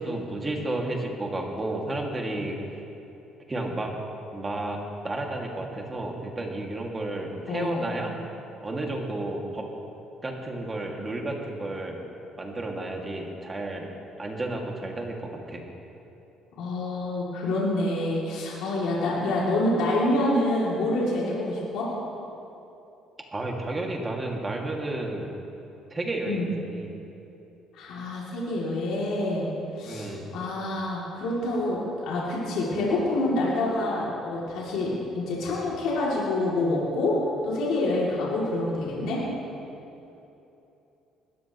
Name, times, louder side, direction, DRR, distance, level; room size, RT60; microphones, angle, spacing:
voice 1, 0.0-2.6 3.5-3.9 4.3-8.2 8.6-9.6 10.2-12.0 12.4-13.9 14.2-15.6 23.3-25.4 25.9-26.9 29.8-30.4, right 2 dB, 20° right, 0 dB, 2.2 m, -32 dB
voice 2, 7.5-7.8 16.6-21.9 26.3-26.5 27.7-29.5 29.8-39.2, left 1 dB, 80° left, -6 dB, 2.8 m, -27 dB
20.5 x 13.5 x 3.1 m, 2.9 s
cardioid pair, 105°, 0 cm